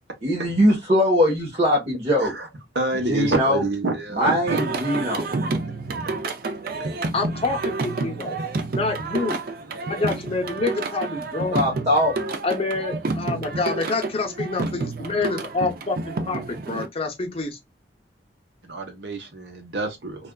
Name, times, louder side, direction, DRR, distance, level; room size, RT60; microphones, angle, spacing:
voice 1, 0.2-2.3 3.1-3.6 4.1-5.2 11.5-12.1, equal, 40° right, 1.1 m, -21 dB
voice 2, 2.7-4.6 18.6-20.3, right 2 dB, 75° right, 0.9 m, -27 dB
Singing, 4.5-16.9, right 3 dB, 55° right, 0.5 m, -29 dB
voice 3, 7.1-8.4 8.7-9.4 9.9-11.6 12.4-17.6, left 3 dB, 35° left, 0.7 m, -27 dB
3.3 x 2.4 x 2.2 m
head